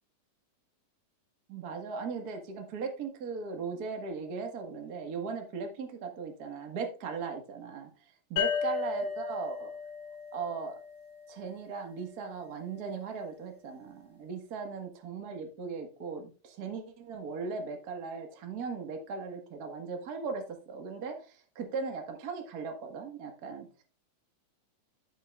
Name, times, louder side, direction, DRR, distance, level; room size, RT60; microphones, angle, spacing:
voice 1, 1.5-7.9 8.3-9.7 10.3-10.7 11.3-23.8, right 5 dB, 80° right, 4 dB, 0.8 m, -38 dB
sound 1, 8.4-11.8, left 7 dB, 60° left, 3.2 m, -35 dB
13.0 x 5.8 x 2.4 m, 0.37 s
omnidirectional pair, 4.4 m